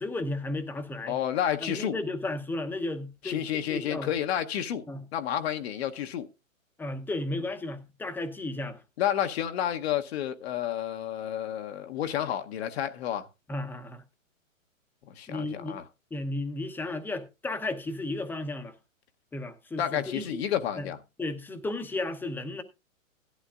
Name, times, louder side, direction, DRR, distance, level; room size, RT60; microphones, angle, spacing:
voice 1, 0.0-1.1 1.6-4.1 4.9-5.0 6.8-8.8 13.5-14.0 15.3-15.8 16.1-18.7 19.3-20.3 20.8-20.9 21.2-22.6, left 2 dB, 5° left, 0.8 m, -34 dB
voice 2, 1.1-2.0 3.2-4.8 5.1-6.3 9.0-13.3 15.2-15.8 19.8-21.0, left 10 dB, 50° left, 1.0 m, -30 dB
16.0 x 11.5 x 2.4 m
hypercardioid pair, 135°, 41 cm